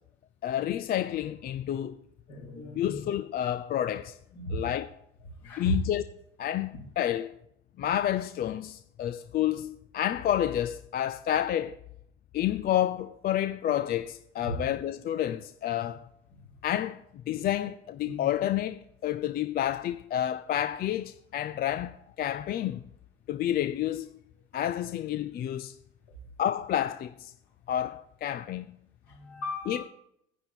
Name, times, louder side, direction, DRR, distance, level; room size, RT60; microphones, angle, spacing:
voice 1, 0.4-2.0 2.7-4.2 4.5-4.9 5.6-6.0 6.4-7.3 7.8-11.8 12.3-16.0 16.6-17.0 17.3-22.8 23.3-24.1 24.5-25.7 26.4-27.3 27.7-28.8 29.7-29.8, left 11 dB, 30° left, 0.5 m, -29 dB
voice 2, 2.3-3.0 4.3-4.6 5.4-5.7 14.4-14.6 17.3-17.4 18.0-18.2 29.1-29.8, left 1 dB, 55° left, 4.5 m, -37 dB
10.0 x 9.2 x 5.7 m
figure-of-eight pair, 70°, 33 cm